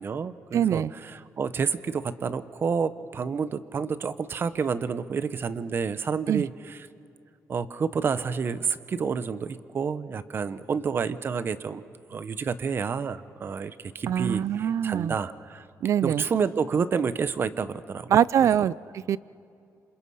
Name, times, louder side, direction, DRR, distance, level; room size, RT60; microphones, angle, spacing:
voice 1, 0.0-6.9 7.5-11.8 12.1-15.6 16.0-18.1 18.4-18.5, right 6 dB, 40° right, 14 dB, 0.9 m, -29 dB
voice 2, 0.5-0.9 6.3-6.4 14.1-15.2 15.8-16.2 18.1-19.2, right 9 dB, 55° right, 20 dB, 0.5 m, -23 dB
28.0 x 26.5 x 5.6 m, 2.5 s
cardioid pair, 140°, 6 cm